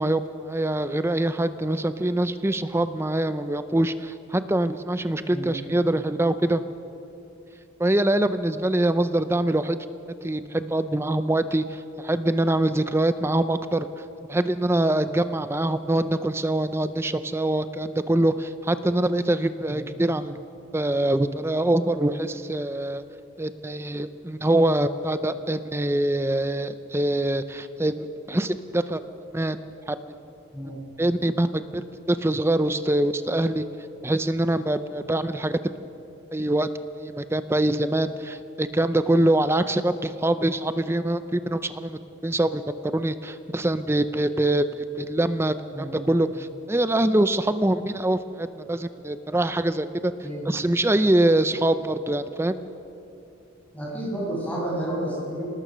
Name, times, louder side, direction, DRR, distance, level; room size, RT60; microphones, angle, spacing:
voice 1, 0.0-6.6 7.8-9.8 10.2-14.0 14.3-20.4 20.7-23.0 23.4-29.0 29.3-29.6 29.9-30.0 31.0-33.7 34.0-35.6 36.3-36.7 37.0-42.6 42.9-50.1 50.5-52.5, right 1 dB, 10° right, 11 dB, 0.5 m, -24 dB
voice 2, 53.7-55.4, right 1 dB, 5° left, -5 dB, 7.2 m, -30 dB
25.5 x 19.0 x 6.3 m, 2.9 s
head